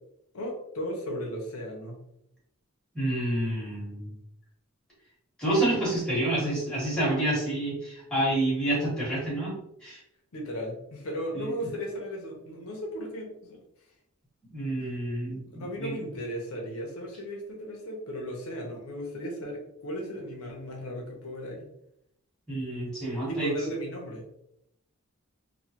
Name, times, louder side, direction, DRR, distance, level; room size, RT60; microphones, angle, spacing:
voice 1, 0.3-2.0 10.3-13.6 14.8-14.9 15.5-21.6 23.3-24.2, equal, 75° left, 0 dB, 0.7 m, -36 dB
voice 2, 2.9-4.1 5.4-9.5 9.8-10.0 11.3-11.5 14.5-15.9 22.5-23.5, right 1 dB, 5° left, -8 dB, 1.3 m, -28 dB
3.0 x 2.1 x 2.8 m, 0.78 s
head